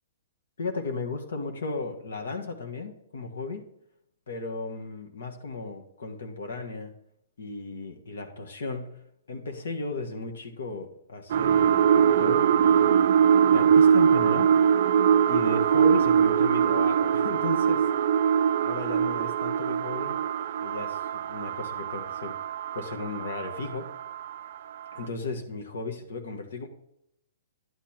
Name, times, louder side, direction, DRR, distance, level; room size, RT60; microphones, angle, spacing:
voice 1, 0.6-3.6 4.3-6.9 7.4-8.9 9.3-13.1 13.5-14.5 15.3-17.8 18.6-20.2 20.6-22.3 22.7-23.9 24.9-26.7, left 3 dB, 80° left, 3 dB, 1.5 m, -35 dB
sound 1, 11.3-24.5 24.9-25.0, right 8 dB, 50° right, 0.3 m, -22 dB
11.0 x 8.5 x 3.0 m, 0.78 s
hypercardioid pair, 170°, 0 cm